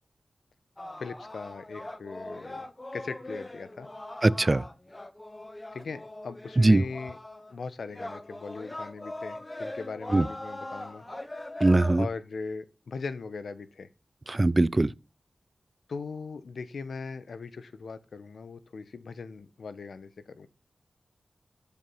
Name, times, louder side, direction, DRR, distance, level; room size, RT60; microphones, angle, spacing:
sound 1, 0.8-7.6 7.9-12.0, left 1 dB, 20° left, 1.3 m, -41 dB
voice 1, 1.0-3.9 5.7-7.2 7.5-11.0 12.0-13.9 15.9-20.5, left 4 dB, 85° left, 1.1 m, -39 dB
voice 2, 4.2-4.6 6.6-6.8 10.1-10.3 11.6-12.1 14.3-14.9, right 2 dB, 30° right, 0.5 m, -21 dB
12.5 x 7.4 x 5.7 m
wide cardioid pair, 85°, 0 cm